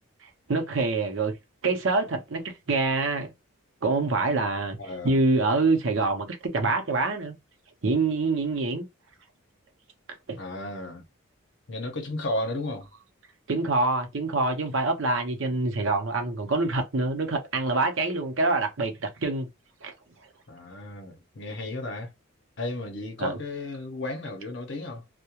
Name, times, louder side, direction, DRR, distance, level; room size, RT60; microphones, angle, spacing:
voice 1, 0.5-1.3 1.6-3.3 3.8-4.8 5.0-7.4 7.8-8.8 10.3-10.4 13.5-19.5 19.8-19.9 23.2-23.4, right 3 dB, 65° right, 0.7 m, -25 dB
voice 2, 4.8-5.2 10.4-11.0 11.7-12.9 20.5-22.1 22.6-25.0, left 2 dB, 55° left, 0.7 m, -34 dB
2.3 x 2.1 x 2.8 m
head